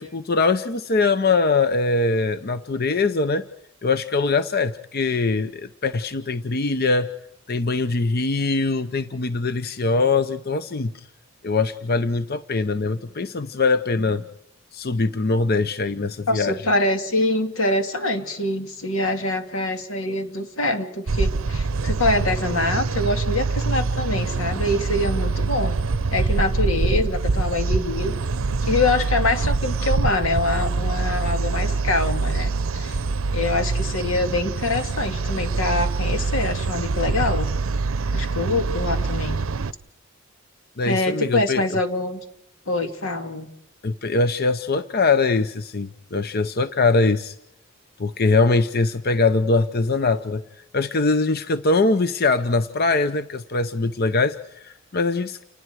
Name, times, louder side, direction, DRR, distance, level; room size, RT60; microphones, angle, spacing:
voice 1, 0.0-3.5 3.8-7.1 7.5-11.1 11.4-14.2 14.7-16.6 40.8-41.8 43.8-47.4 48.0-50.4 50.7-55.4, left 3 dB, 50° left, 11 dB, 0.7 m, -22 dB
voice 2, 16.3-25.7 26.1-28.1 28.6-33.0 33.3-37.5 38.1-39.4 40.8-42.2 42.7-43.5, left 2 dB, 85° left, 6 dB, 2.6 m, -24 dB
sound 1, 21.1-39.7, right 3 dB, 85° right, 0.7 m, -24 dB
29.5 x 20.0 x 4.7 m, 0.79 s
head